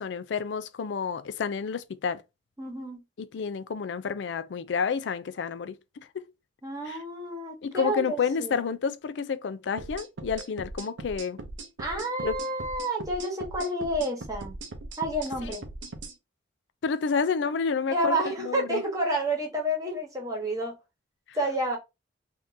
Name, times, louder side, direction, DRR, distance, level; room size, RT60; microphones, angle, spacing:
voice 1, 0.0-2.2 3.2-5.8 6.1-6.3 6.9-7.0 7.6-11.4 12.2-12.4 15.4-15.6 16.8-18.8 21.3-21.4, left 5 dB, 70° left, 0.4 m, -30 dB
voice 2, 2.6-3.0 6.6-8.6 11.8-14.5 15.0-15.6 17.9-20.8 21.3-21.8, right 1 dB, 20° right, 1.2 m, -30 dB
sound 1, 9.8-16.1, right 2 dB, 85° right, 0.6 m, -40 dB
3.6 x 2.6 x 2.6 m
head